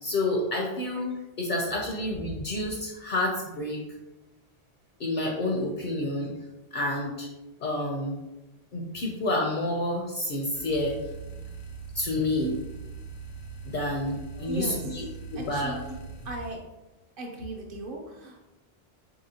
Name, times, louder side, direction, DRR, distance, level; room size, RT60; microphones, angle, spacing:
voice 1, 0.0-3.8 5.0-6.3 6.7-7.3 7.6-8.1 8.7-11.0 11.9-12.6 13.6-15.1 15.3-15.8, left 1 dB, 60° left, 0 dB, 0.6 m, -29 dB
sound 1, 10.5-16.6, right 5 dB, 85° left, 0.9 m, -41 dB
voice 2, 14.5-14.8 15.4-16.0 16.2-16.6 17.2-18.5, right 2 dB, 60° right, 0 dB, 0.8 m, -37 dB
4.0 x 2.8 x 2.7 m, 1.0 s
omnidirectional pair, 1.1 m